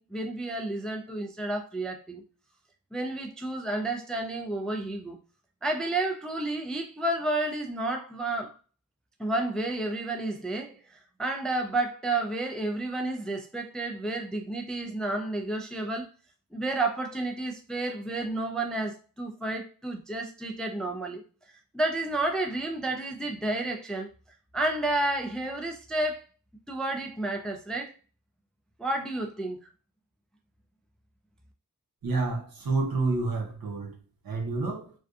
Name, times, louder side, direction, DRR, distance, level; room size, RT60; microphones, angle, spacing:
voice 1, 0.0-2.2 2.9-5.2 5.6-8.6 9.2-16.1 16.5-21.2 21.7-24.1 24.5-26.3 26.7-27.9 28.8-29.6, right 2 dB, ahead, 0.3 m, -31 dB
voice 2, 32.0-34.0 34.2-34.9, right 3 dB, 75° right, 0.8 m, -29 dB
2.6 x 2.2 x 2.3 m
wide cardioid pair, 95°, 36 cm